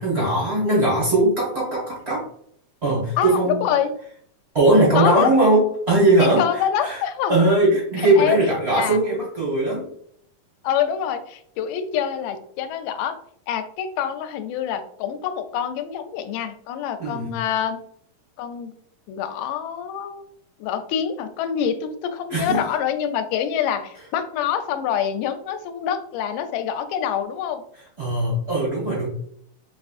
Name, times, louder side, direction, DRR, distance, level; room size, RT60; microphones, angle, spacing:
voice 1, 0.0-2.2 2.8-3.7 4.5-7.0 7.3-9.9 17.0-17.3 22.3-22.6 28.0-29.1, right 2 dB, 40° right, -5 dB, 0.9 m, -20 dB
voice 2, 3.2-3.9 4.9-5.3 6.4-7.4 8.2-8.4 8.7-9.0 10.6-13.2 13.5-17.8 18.4-18.7 19.1-20.2 20.6-27.6, left 9 dB, 80° left, 8 dB, 2.0 m, -26 dB
4.9 x 3.5 x 2.4 m, 0.67 s
omnidirectional pair, 3.7 m